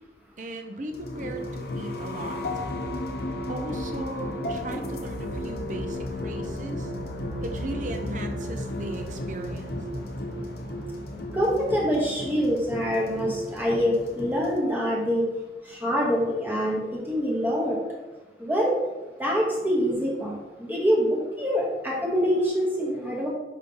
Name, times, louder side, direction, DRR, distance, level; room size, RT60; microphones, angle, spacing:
voice 1, 0.4-2.7 3.5-6.9 7.4-9.8, right 1 dB, 45° right, 4 dB, 0.8 m, -37 dB
sound 1, 0.9-14.6, left 1 dB, 60° left, 0.8 m, -34 dB
voice 2, 11.3-15.2 15.6-17.8 18.4-18.7 19.2-23.3, equal, 10° right, -4 dB, 1.1 m, -25 dB
5.6 x 5.3 x 3.8 m, 1.1 s
head